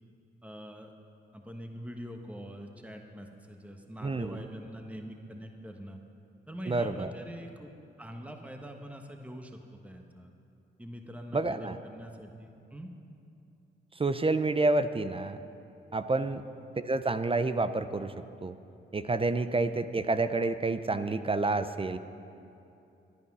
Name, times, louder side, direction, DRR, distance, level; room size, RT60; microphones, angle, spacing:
voice 1, 0.4-0.9 1.3-6.0 6.5-7.7 8.0-10.3 10.8-12.9 16.2-16.4, equal, 5° right, 3 dB, 1.3 m, -44 dB
voice 2, 4.0-4.4 6.7-7.1 11.3-11.8 14.0-15.4 15.9-16.4 16.9-18.1 18.4-18.5 18.9-22.0, right 3 dB, 25° right, 11 dB, 0.6 m, -28 dB
13.0 x 10.5 x 6.2 m, 2.7 s
supercardioid pair, 55°, 21 cm